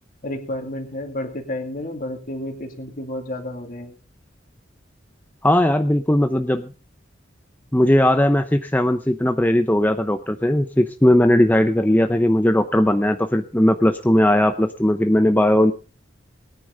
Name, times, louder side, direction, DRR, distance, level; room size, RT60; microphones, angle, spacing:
voice 1, 0.2-3.9, left 1 dB, 50° left, 3 dB, 2.6 m, -31 dB
voice 2, 5.4-6.7 7.7-15.7, left 1 dB, 10° left, 7 dB, 0.7 m, -18 dB
21.5 x 10.0 x 3.9 m, 0.35 s
head